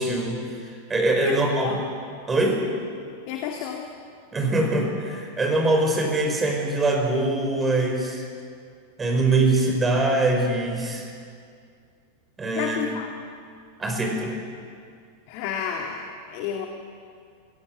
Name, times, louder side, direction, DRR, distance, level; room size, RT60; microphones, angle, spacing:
voice 1, 0.0-1.8 2.3-2.6 4.3-8.2 9.0-11.1 12.4-12.8 13.8-14.4, right 2 dB, 15° right, 2 dB, 5.3 m, -23 dB
voice 2, 1.2-1.8 3.3-3.9 12.6-13.1 15.3-16.7, left 8 dB, 45° left, 2 dB, 2.3 m, -30 dB
26.0 x 17.0 x 9.4 m, 2.3 s
figure-of-eight pair, 90°, 0 cm